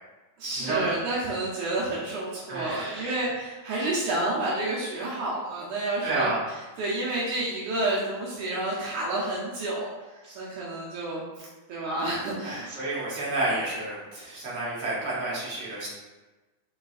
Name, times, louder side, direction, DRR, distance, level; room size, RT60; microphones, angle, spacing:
voice 1, 0.4-6.3 6.8-9.9 10.3-11.3 11.7-12.7, right 2 dB, 80° right, -5 dB, 1.3 m, -29 dB
voice 2, 2.5-3.2 6.0-6.4 10.2-10.4 12.4-15.9, right 2 dB, 50° right, -7 dB, 1.6 m, -30 dB
4.7 x 3.9 x 2.4 m, 1.2 s
omnidirectional pair, 3.4 m